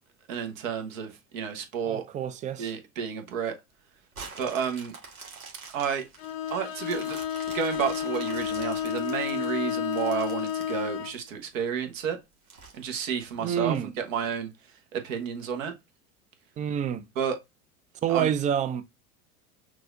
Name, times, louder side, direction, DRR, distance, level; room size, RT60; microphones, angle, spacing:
voice 1, 0.3-2.0 2.6-3.5 4.4-4.9 5.7-6.1 6.5-7.2 7.5-12.2 12.7-14.5 14.9-15.7 17.2-17.4 18.1-18.3, right 7 dB, 70° right, 1.2 m, -31 dB
voice 2, 1.8-2.7 13.4-13.9 16.6-17.0 18.0-18.8, right 9 dB, 20° right, 0.3 m, -28 dB
sound 1, 4.1-11.4 11.9-12.0 12.5-13.8 14.3-14.4, right 4 dB, 85° right, 1.4 m, -46 dB
Bowed string instrument, 6.2-11.2, left 10 dB, 65° left, 0.7 m, -31 dB
6.0 x 2.4 x 2.5 m
hypercardioid pair, 80°, 42 cm